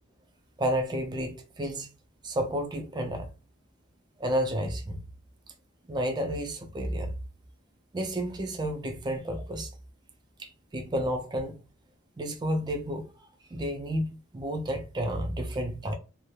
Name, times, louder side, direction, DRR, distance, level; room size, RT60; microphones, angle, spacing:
voice 1, 0.6-1.9 2.2-3.3 4.2-5.0 5.9-7.1 7.9-9.7 10.4-11.6 12.2-13.1 13.5-15.9, equal, 20° right, 0.3 m, -31 dB
2.3 x 2.0 x 3.0 m
head